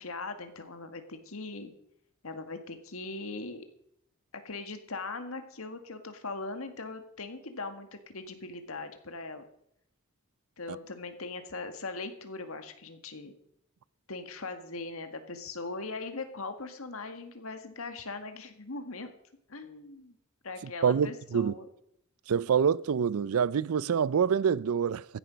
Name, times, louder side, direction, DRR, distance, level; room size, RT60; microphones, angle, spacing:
voice 1, 0.0-1.7 2.2-3.6 4.3-9.4 10.6-13.3 14.1-19.1 19.5-20.1 20.4-21.7, left 3 dB, 75° left, 1.8 m, -40 dB
voice 2, 20.8-21.5 22.3-25.1, right 7 dB, 80° right, 0.4 m, -26 dB
15.0 x 10.5 x 5.1 m
head